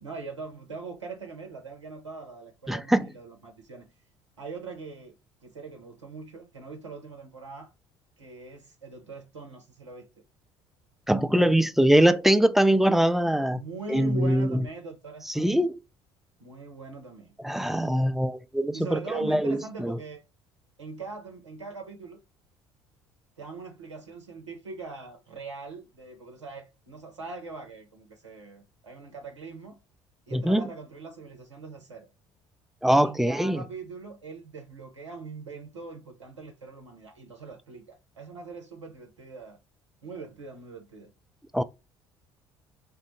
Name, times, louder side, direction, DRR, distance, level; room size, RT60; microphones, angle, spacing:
voice 1, 0.0-3.9 4.4-5.1 5.4-7.7 8.2-10.1 13.5-15.5 16.4-17.3 18.7-20.2 20.8-22.2 23.4-29.8 30.3-32.1 33.0-39.6 40.0-41.1, right 4 dB, 90° right, 0.5 m, -42 dB
voice 2, 2.7-3.1 11.1-13.6 13.9-14.7 15.4-15.8 17.4-20.0 30.3-30.7 32.8-33.6 41.5-41.6, right 1 dB, ahead, 0.3 m, -23 dB
3.4 x 2.1 x 3.0 m
figure-of-eight pair, 55°, 15 cm